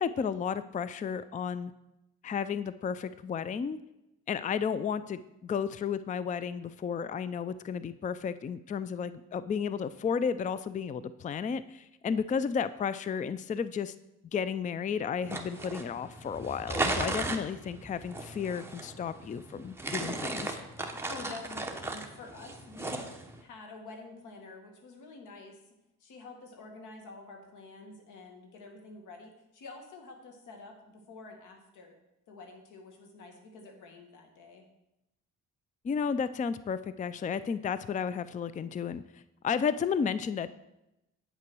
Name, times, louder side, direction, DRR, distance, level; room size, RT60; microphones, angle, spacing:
voice 1, 0.0-1.7 2.2-3.8 4.3-13.9 14.3-20.6 35.8-39.0 39.4-40.5, left 6 dB, 25° left, 15 dB, 0.4 m, -33 dB
sound 1, 15.2-23.4, right 2 dB, 10° right, 1.1 m, -36 dB
voice 2, 21.1-23.1 23.4-25.6 26.0-31.9 32.3-34.7, left 3 dB, 90° left, 3 dB, 1.9 m, -48 dB
8.7 x 5.8 x 6.1 m, 0.89 s
cardioid pair, 90°, 30 cm